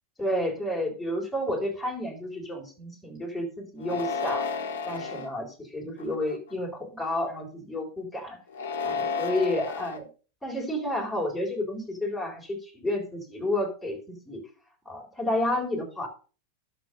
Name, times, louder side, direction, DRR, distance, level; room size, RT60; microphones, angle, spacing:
voice 1, 0.2-4.5 4.8-8.4 8.8-10.1 10.4-14.4 14.9-16.1, left 1 dB, ahead, -1 dB, 4.0 m, -31 dB
sound 1, 3.8-5.3 6.0-6.5 8.5-10.0, left 5 dB, 60° left, 1.3 m, -32 dB
11.0 x 6.9 x 5.3 m, 0.36 s
figure-of-eight pair, 90°, 0 cm